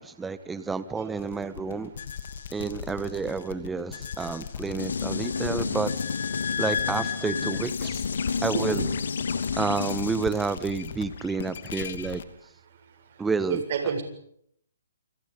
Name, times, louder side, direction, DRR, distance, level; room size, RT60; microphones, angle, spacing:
voice 1, 0.0-1.9 2.5-5.9 6.6-8.0 8.4-8.9 9.6-12.2 13.2-13.6, right 4 dB, 5° right, 14 dB, 1.4 m, -30 dB
sound 1, 1.2-12.2, left 7 dB, 55° left, 2.8 m, -36 dB
sound 2, 4.8-10.2, left 5 dB, 85° left, 2.8 m, -30 dB
voice 2, 8.5-8.9 13.5-14.0, right 6 dB, 45° right, 6 dB, 7.7 m, -28 dB
29.0 x 26.5 x 5.4 m, 0.68 s
hypercardioid pair, 155°, 0 cm